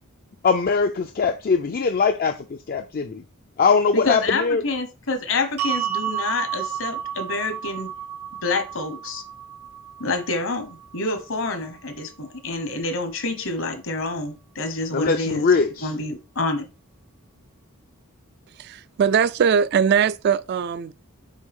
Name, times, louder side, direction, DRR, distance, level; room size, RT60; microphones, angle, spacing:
voice 1, 0.4-3.2 3.6-4.6 14.9-15.9, left 5 dB, 40° left, 0.4 m, -21 dB
voice 2, 3.9-7.9 8.4-9.2 10.0-15.5 15.8-16.7, left 3 dB, 65° left, 1.1 m, -27 dB
sound 1, 5.6-11.8, right 9 dB, 90° right, 1.8 m, -32 dB
voice 3, 18.6-20.9, right 7 dB, 50° right, 0.3 m, -20 dB
6.3 x 4.6 x 3.6 m
head